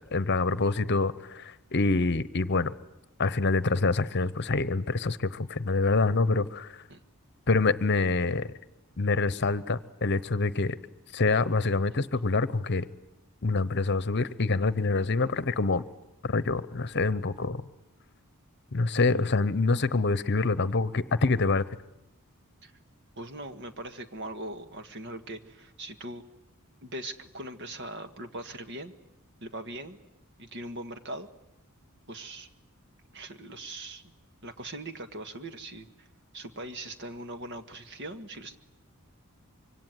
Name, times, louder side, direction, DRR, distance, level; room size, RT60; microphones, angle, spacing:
voice 1, 0.1-2.7 3.2-6.8 7.5-8.5 9.0-10.8 11.1-12.9 13.4-15.8 16.2-17.6 18.7-21.6, left 3 dB, 50° left, 16 dB, 0.9 m, -26 dB
voice 2, 23.2-26.3 26.8-28.9 29.4-30.0 30.4-31.3 32.1-32.5 33.1-34.0 34.4-36.1 36.3-38.6, right 1 dB, 55° right, 8 dB, 1.7 m, -40 dB
25.5 x 24.0 x 9.3 m, 0.87 s
head